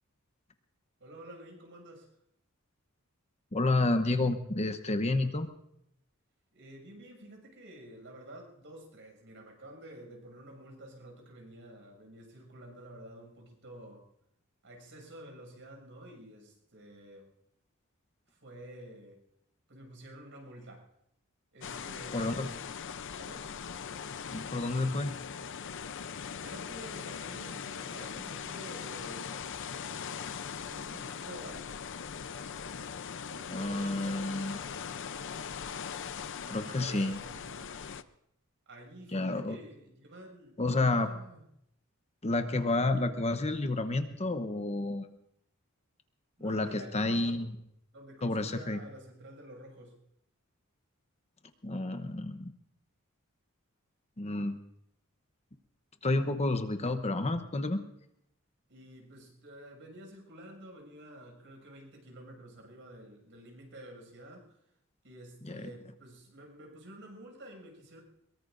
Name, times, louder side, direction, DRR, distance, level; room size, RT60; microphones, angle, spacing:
voice 1, 1.0-2.1 6.5-14.0 14.6-17.3 18.3-19.2 19.7-20.8 21.5-22.6 23.2-23.4 26.4-29.3 30.6-31.7 33.3-34.7 36.7-37.7 38.7-41.4 46.4-47.4 47.9-50.0 58.7-64.6 65.0-68.0, right 1 dB, 60° right, 2 dB, 6.4 m, -49 dB
voice 2, 3.5-5.5 22.1-22.5 24.3-25.2 33.5-34.6 36.5-37.2 39.1-39.6 40.6-41.1 42.2-45.1 46.4-47.5 48.2-48.8 51.6-52.5 54.2-54.6 56.0-57.8 65.4-65.7, left 2 dB, 30° left, 8 dB, 0.9 m, -30 dB
sound 1, 21.6-38.0, left 7 dB, 60° left, 0.6 m, -40 dB
23.0 x 22.5 x 2.6 m, 0.76 s
head